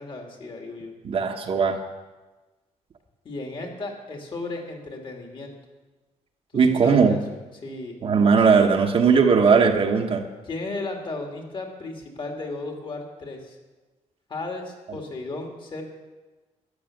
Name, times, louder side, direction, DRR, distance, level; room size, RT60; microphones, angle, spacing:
voice 1, 0.0-0.9 3.2-5.6 6.5-7.2 7.6-8.0 10.4-13.6 14.3-15.8, left 2 dB, 40° left, 2 dB, 2.5 m, -35 dB
voice 2, 1.0-1.8 6.5-7.2 8.0-10.2, right 5 dB, 50° right, 2 dB, 1.2 m, -18 dB
13.0 x 10.0 x 7.3 m, 1.2 s
cardioid pair, 140°, 13 cm